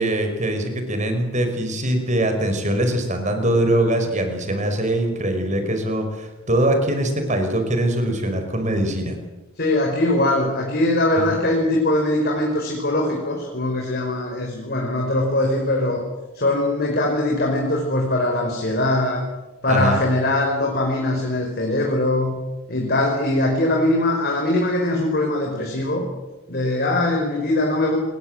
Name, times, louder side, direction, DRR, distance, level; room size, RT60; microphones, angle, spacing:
voice 1, 0.0-9.2 11.2-11.3 19.7-20.0, right 1 dB, 35° right, 6 dB, 5.5 m, -22 dB
voice 2, 9.6-16.0 16.3-19.3 19.6-22.3 22.7-26.1 26.5-28.0, left 1 dB, 45° left, 0 dB, 5.2 m, -21 dB
27.5 x 22.0 x 8.0 m, 1.1 s
head